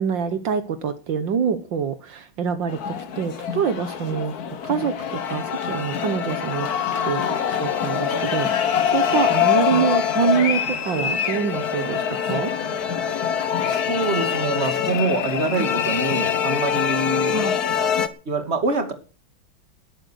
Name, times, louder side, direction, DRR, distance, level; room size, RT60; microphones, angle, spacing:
voice 1, 0.0-12.5 12.9-13.0 15.6-15.7 17.3-17.5, right 7 dB, 70° right, 10 dB, 1.9 m, -26 dB
sound 1, 2.7-18.1, left 8 dB, 55° left, 1.7 m, -24 dB
voice 2, 13.6-17.3 18.3-18.9, right 3 dB, 35° right, 7 dB, 2.7 m, -25 dB
19.0 x 9.0 x 6.4 m, 0.36 s
omnidirectional pair, 2.1 m